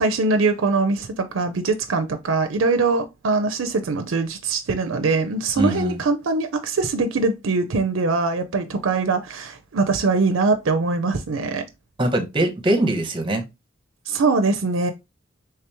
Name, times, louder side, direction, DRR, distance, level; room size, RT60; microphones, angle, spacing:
voice 1, 0.0-11.6 14.1-14.9, right 3 dB, 75° right, 0.5 m, -22 dB
voice 2, 5.6-6.0 12.0-13.4, right 1 dB, 25° right, 0.8 m, -22 dB
3.3 x 2.9 x 3.3 m
head